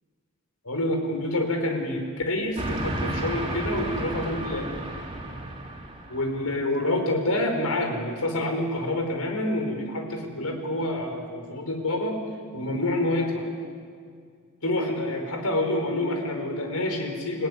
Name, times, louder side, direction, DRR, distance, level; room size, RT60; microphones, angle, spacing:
voice 1, 0.6-4.7 6.1-12.2 12.5-13.4 14.6-17.5, left 1 dB, 75° left, 3 dB, 4.7 m, -27 dB
Train, 2.6-6.5, right 1 dB, 25° right, 3.4 m, -32 dB
29.5 x 17.5 x 9.7 m, 2.1 s
head